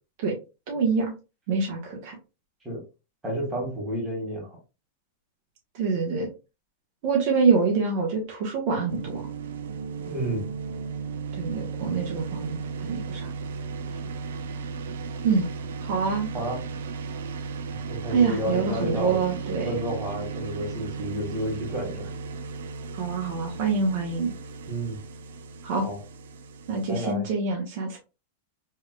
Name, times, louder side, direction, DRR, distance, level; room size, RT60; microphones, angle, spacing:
voice 1, 0.7-1.1 1.5-2.1 5.7-6.3 7.0-9.2 11.3-13.3 15.2-15.5 15.8-16.3 18.1-19.8 22.9-24.3 25.6-25.9 26.7-28.0, right 5 dB, 55° right, 0 dB, 1.1 m, -25 dB
voice 2, 3.2-4.6 10.0-10.5 16.3-16.6 17.9-19.2 19.6-22.1 24.7-25.0 25.8-26.0 26.9-27.2, equal, 10° right, -3 dB, 1.8 m, -30 dB
sound 1, 8.9-27.1, right 4 dB, 80° right, 0.5 m, -35 dB
3.5 x 3.3 x 2.3 m, 0.30 s
supercardioid pair, 135°, 0 cm